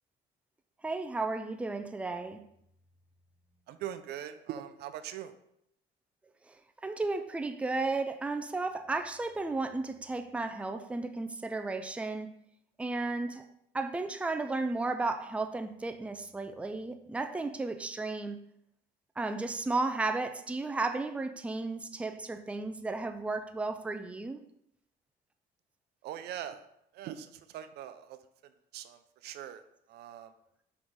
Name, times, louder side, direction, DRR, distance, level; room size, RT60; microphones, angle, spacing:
voice 1, 0.8-2.4 6.5-6.6 6.8-12.3 12.8-13.4 13.7-18.4 19.2-24.4, right 3 dB, 5° right, 7 dB, 0.4 m, -34 dB
voice 2, 3.7-5.3 26.0-26.7 26.9-29.6 29.9-30.3, right 11 dB, 75° right, 11 dB, 0.5 m, -42 dB
5.3 x 4.8 x 3.6 m, 0.76 s
cardioid pair, 110°, 17 cm